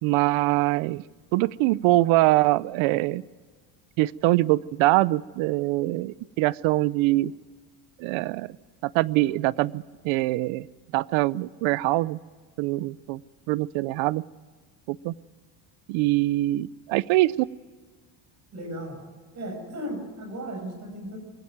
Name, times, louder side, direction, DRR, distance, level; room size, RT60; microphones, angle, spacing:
voice 1, 0.0-1.0 1.3-3.2 4.0-7.3 8.0-8.6 8.8-10.7 10.9-12.2 12.6-13.2 13.5-14.2 14.9-15.1 15.9-17.5, right 18 dB, 75° right, 21 dB, 0.6 m, -23 dB
voice 2, 18.5-19.0 19.3-21.2, equal, 35° right, 5 dB, 6.7 m, -35 dB
22.5 x 16.0 x 9.2 m, 1.5 s
cardioid pair, 150°, 47 cm